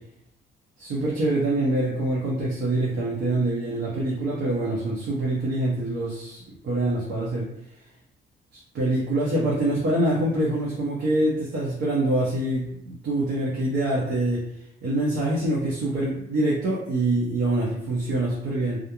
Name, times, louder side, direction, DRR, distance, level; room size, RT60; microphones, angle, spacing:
voice 1, 0.8-7.5 8.7-14.4 14.8-18.8, right 1 dB, 65° right, -5 dB, 0.7 m, -25 dB
2.4 x 2.1 x 2.9 m, 0.74 s
cardioid pair, 90°, 20 cm